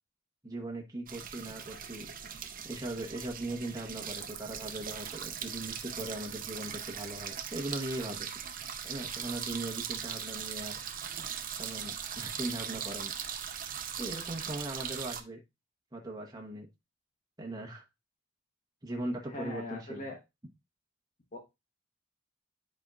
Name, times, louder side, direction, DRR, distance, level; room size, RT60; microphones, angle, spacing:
voice 1, 0.4-2.1 2.6-8.3 8.8-10.7 11.6-13.1 14.0-15.4 15.9-16.7 17.4-17.8 18.8-20.1, right 1 dB, 20° right, 1.1 m, -39 dB
sound 1, 1.1-15.2, right 8 dB, 45° right, 0.7 m, -40 dB
voice 2, 19.3-20.2 21.3-21.4, left 2 dB, 40° left, 1.1 m, -40 dB
9.8 x 4.4 x 2.4 m
head